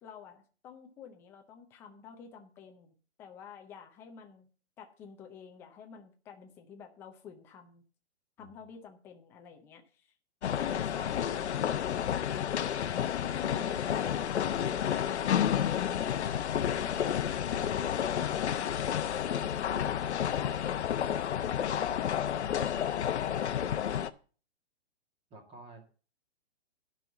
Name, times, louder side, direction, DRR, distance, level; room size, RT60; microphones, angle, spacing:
voice 1, 0.0-2.9 3.2-4.5 4.8-7.8 8.4-10.1 10.5-12.7 13.1-17.2 17.5-20.8, left 6 dB, 5° left, 4 dB, 0.5 m, -49 dB
sound 1, 10.4-24.1, left 9 dB, 75° left, 0.9 m, -31 dB
voice 2, 25.3-25.9, right 1 dB, 15° right, 5 dB, 1.9 m, -53 dB
12.0 x 5.6 x 7.0 m, 0.39 s
hypercardioid pair, 160°, 35 cm